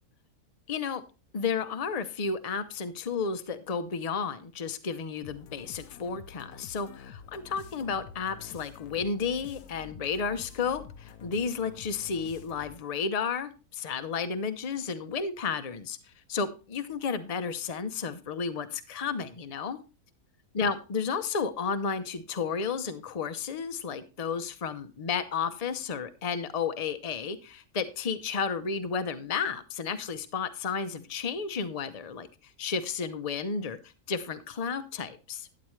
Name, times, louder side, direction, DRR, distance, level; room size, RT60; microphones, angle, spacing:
voice 1, 0.7-1.0 1.3-16.0 16.3-19.8 20.5-32.3 32.6-33.8 34.1-35.5, left 5 dB, 35° left, 10 dB, 0.7 m, -32 dB
sound 1, 5.2-12.9, left 8 dB, 80° left, 1.2 m, -48 dB
12.0 x 8.9 x 3.2 m, 0.32 s
omnidirectional pair, 1.6 m